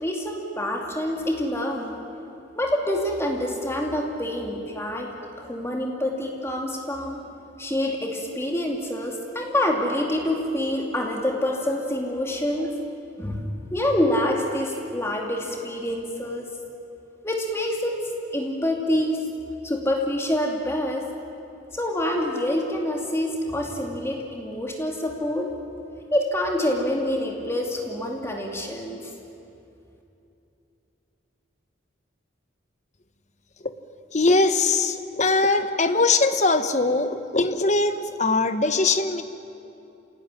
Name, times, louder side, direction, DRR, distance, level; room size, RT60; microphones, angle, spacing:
voice 1, 0.0-2.0 2.6-5.1 5.4-7.2 7.6-12.7 13.2-16.5 17.2-18.0 18.3-19.3 19.6-21.0 21.7-25.5 26.1-29.1, left 1 dB, 15° left, 1 dB, 2.5 m, -26 dB
voice 2, 34.1-39.2, left 3 dB, 35° left, 9 dB, 1.2 m, -21 dB
27.0 x 17.5 x 10.0 m, 2.8 s
head